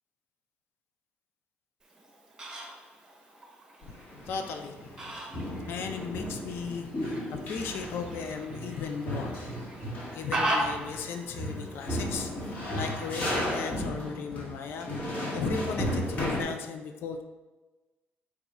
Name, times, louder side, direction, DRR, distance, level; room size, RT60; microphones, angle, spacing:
Fowl, 1.8-13.8, right 1 dB, 15° right, 0.8 m, -39 dB
sound 1, 3.8-5.0 5.3-16.4, left 1 dB, 40° left, 1.1 m, -34 dB
voice 1, 4.3-5.1 5.7-9.5 10.1-12.3 12.7-14.9 15.3-17.2, left 6 dB, 70° left, 5 dB, 0.4 m, -36 dB
4.8 x 2.3 x 4.1 m, 1.2 s
cardioid pair, 155°, 4 cm